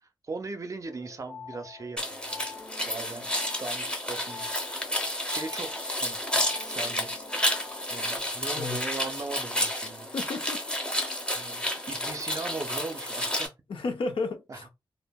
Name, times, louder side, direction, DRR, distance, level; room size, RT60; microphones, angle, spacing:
voice 1, 0.0-2.5 2.9-3.3 3.6-4.8 5.3-5.7 6.0-7.1 7.9-10.1 11.3-13.5 14.5-14.6, right 3 dB, 35° right, 0.5 m, -39 dB
sound 1, 0.8-8.2, left 6 dB, 55° left, 1.4 m, -46 dB
sound 2, 2.0-13.5, left 1 dB, 10° left, 0.8 m, -31 dB
voice 2, 10.1-10.8 12.0-12.2 13.7-14.7, left 3 dB, 75° left, 0.7 m, -33 dB
2.8 x 2.7 x 2.2 m
wide cardioid pair, 105°, 9 cm